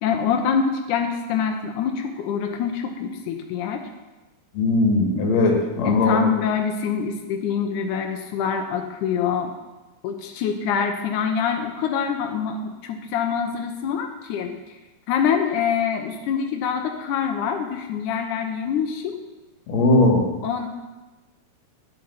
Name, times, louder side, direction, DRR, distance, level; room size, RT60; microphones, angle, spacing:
voice 1, 0.0-3.8 5.9-9.5 10.0-14.6 15.1-19.2 20.4-20.7, left 7 dB, 90° left, 4 dB, 1.7 m, -25 dB
voice 2, 4.5-6.2 19.7-20.3, left 2 dB, 55° left, 1 dB, 2.2 m, -19 dB
10.0 x 7.9 x 5.5 m, 1.1 s
omnidirectional pair, 4.7 m